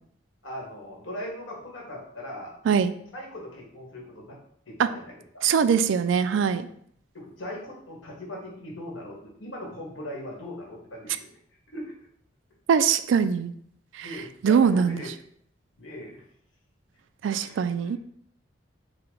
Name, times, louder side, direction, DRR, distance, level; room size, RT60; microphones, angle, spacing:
voice 1, 0.4-2.6 3.1-4.4 4.7-5.4 7.1-11.3 11.7-11.9 14.0-15.1 15.8-16.2 17.4-17.5 17.8-17.9, left 1 dB, 85° left, -2 dB, 1.5 m, -39 dB
voice 2, 5.4-6.7 12.7-13.5 14.0-14.1 14.4-15.0 17.2-18.0, right 7 dB, 75° right, 12 dB, 0.3 m, -22 dB
5.7 x 2.2 x 3.8 m, 0.67 s
head